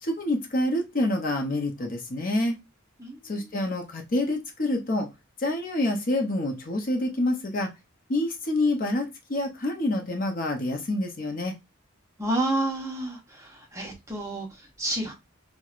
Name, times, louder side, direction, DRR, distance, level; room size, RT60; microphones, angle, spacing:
voice 1, 0.0-2.6 3.2-5.1 5.4-7.7 8.1-11.5, left 1 dB, 40° left, 0.6 m, -27 dB
voice 2, 3.0-3.5 12.2-15.1, right 1 dB, 15° right, 0.6 m, -30 dB
4.5 x 2.1 x 2.4 m
head